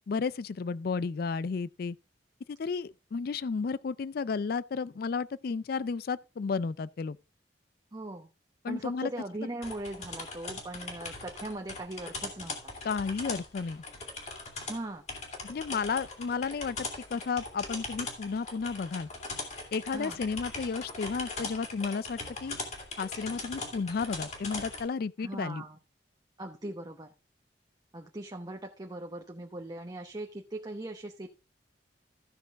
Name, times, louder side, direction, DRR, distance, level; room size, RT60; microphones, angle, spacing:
voice 1, 0.1-2.0 2.5-7.2 8.6-9.1 12.8-13.8 15.4-16.8 17.1-19.1 19.7-22.6 23.0-25.6, left 5 dB, 60° left, 0.4 m, -33 dB
voice 2, 7.9-8.3 8.7-12.7 14.7-15.0 19.9-20.2 25.2-25.8 26.4-27.1 27.9-31.3, right 1 dB, 25° right, 0.9 m, -39 dB
sound 1, 9.6-24.8, left 3 dB, 40° left, 2.8 m, -40 dB
15.0 x 6.1 x 3.5 m
head